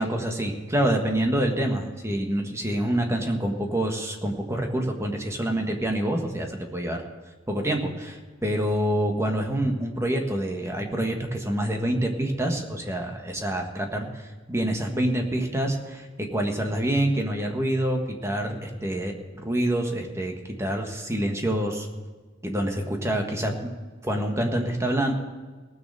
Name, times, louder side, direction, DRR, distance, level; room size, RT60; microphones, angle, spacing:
voice 1, 0.0-7.0 7.5-14.2 14.5-16.0 16.3-20.3 20.6-21.9 22.4-23.7 24.0-25.2, right 1 dB, 15° right, 3 dB, 1.5 m, -26 dB
18.0 x 6.7 x 6.7 m, 1.4 s
head